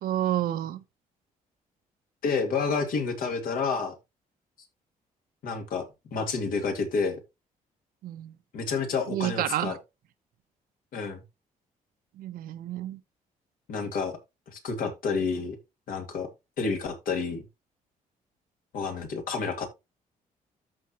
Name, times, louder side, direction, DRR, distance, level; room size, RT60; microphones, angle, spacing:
voice 1, 0.0-0.8 8.0-8.3 9.1-9.8 12.2-13.0, right 12 dB, 85° right, 0.9 m, -29 dB
voice 2, 2.2-3.9 5.4-7.2 8.5-9.8 10.9-11.2 13.7-14.2 14.5-15.6 15.9-16.3 16.6-17.4 18.7-19.7, left 5 dB, 75° left, 2.6 m, -29 dB
13.5 x 4.6 x 3.0 m
cardioid pair, 115°, 15 cm